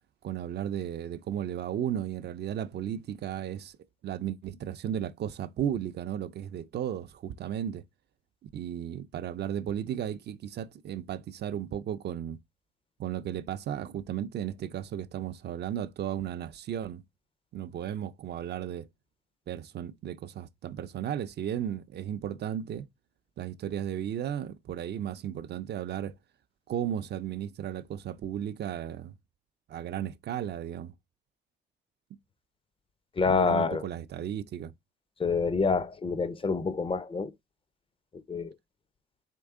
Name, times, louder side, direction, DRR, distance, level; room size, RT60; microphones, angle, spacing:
voice 1, 0.2-3.7 4.0-7.8 8.4-12.4 13.0-17.0 17.5-18.9 19.5-22.9 23.4-26.1 26.7-29.1 29.7-30.9 33.3-34.7, right 10 dB, 55° right, 0.5 m, -34 dB
voice 2, 33.2-33.9 35.2-37.3 38.1-38.5, left 4 dB, 25° left, 0.5 m, -27 dB
4.5 x 3.2 x 3.6 m
cardioid pair, 90°, 20 cm